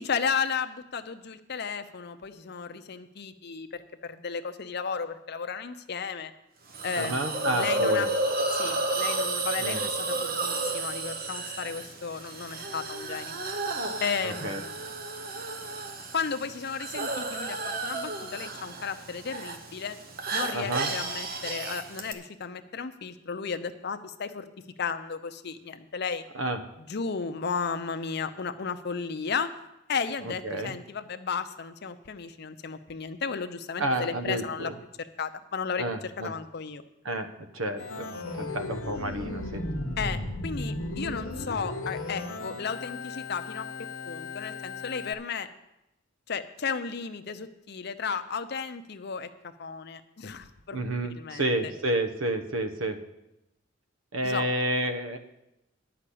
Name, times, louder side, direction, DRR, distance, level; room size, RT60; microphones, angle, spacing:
voice 1, 0.0-6.3 6.8-8.1 8.5-13.3 14.0-14.8 16.1-20.0 20.3-24.5 24.8-26.2 26.9-29.5 29.9-34.7 35.0-36.8 40.0-43.7 44.1-45.5 46.3-50.8 51.1-51.7 54.2-54.5, left 5 dB, 55° left, 9 dB, 0.6 m, -34 dB
Hiss, 6.7-22.1, right 2 dB, 45° right, 1.0 m, -32 dB
voice 2, 7.0-8.1 9.6-9.8 14.2-14.6 20.5-20.9 26.3-26.6 30.2-30.8 33.8-34.7 35.8-36.3 37.0-37.3 37.5-38.1 38.4-39.6 50.7-53.0 54.1-55.2, right 1 dB, 80° right, 8 dB, 1.0 m, -30 dB
Organ, 37.8-45.1, left 2 dB, 85° left, 0.9 m, -35 dB
9.9 x 5.8 x 8.4 m, 0.91 s
head